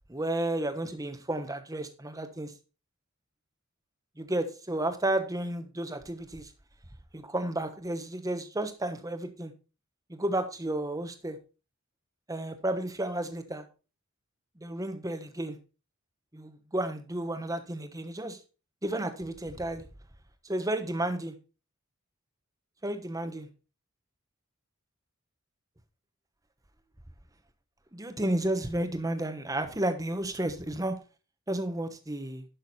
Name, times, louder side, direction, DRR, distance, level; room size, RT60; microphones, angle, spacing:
voice 1, 0.1-2.5 4.2-6.5 7.1-9.5 10.1-11.4 12.3-13.6 14.6-15.6 16.3-18.4 18.8-19.9 20.4-21.4 22.8-23.5 27.9-30.9 31.5-32.4, right 1 dB, 15° right, 1.2 m, -32 dB
11.0 x 6.3 x 4.2 m
head